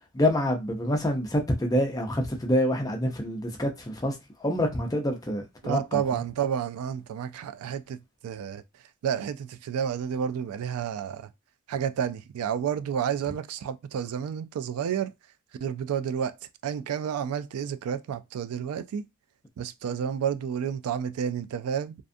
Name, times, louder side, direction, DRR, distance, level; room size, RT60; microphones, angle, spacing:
voice 1, 0.1-4.1 4.4-6.0, left 1 dB, 15° left, 0.4 m, -26 dB
voice 2, 5.6-8.6 9.0-11.3 11.7-15.1 15.6-16.3 16.6-19.1 19.6-22.0, right 8 dB, 90° right, 0.3 m, -30 dB
2.5 x 2.3 x 2.5 m
head